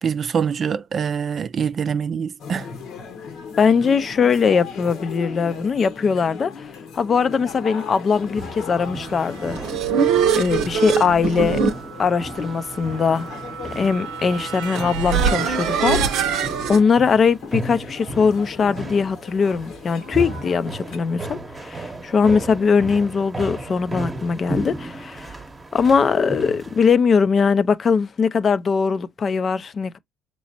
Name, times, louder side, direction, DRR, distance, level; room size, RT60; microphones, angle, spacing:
voice 1, 0.0-2.7, right 7 dB, 50° right, 0.4 m, -24 dB
sound 1, 2.4-21.0, left 5 dB, 75° left, 1.2 m, -38 dB
voice 2, 3.6-6.7 6.9-9.6 10.4-11.6 12.0-13.3 13.8-16.4 16.7-25.4 25.7-30.0, left 5 dB, 45° left, 0.5 m, -20 dB
sound 2, 8.1-26.9, right 1 dB, 25° right, 0.9 m, -35 dB
sound 3, 9.3-16.8, right 7 dB, 80° right, 0.7 m, -23 dB
6.2 x 3.0 x 2.7 m
supercardioid pair, 75°, 0 cm